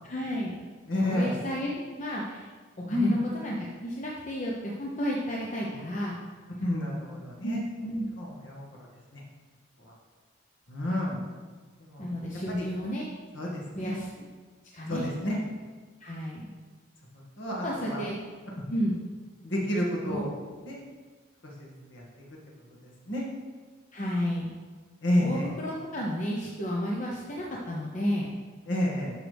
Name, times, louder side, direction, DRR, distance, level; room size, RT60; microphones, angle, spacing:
voice 1, 0.0-0.5 0.9-2.5 2.9-6.2 7.4-8.1 12.0-13.1 13.7-14.3 14.7-15.1 16.0-16.5 17.6-18.2 18.7-18.9 20.0-20.3 23.9-24.5 25.2-28.4, equal, 40° left, -3 dB, 0.9 m, -32 dB
voice 2, 0.9-1.4 2.9-3.1 6.6-7.6 8.2-8.6 9.1-9.2 10.7-11.2 11.8-12.1 12.6-12.7 13.3-13.9 14.9-15.4 17.4-18.0 19.4-20.3 20.6-20.8 21.6-22.0 23.1-23.2 25.0-25.5 28.7-29.1, left 1 dB, 60° left, -3 dB, 2.0 m, -29 dB
10.5 x 6.3 x 3.5 m, 1.4 s
head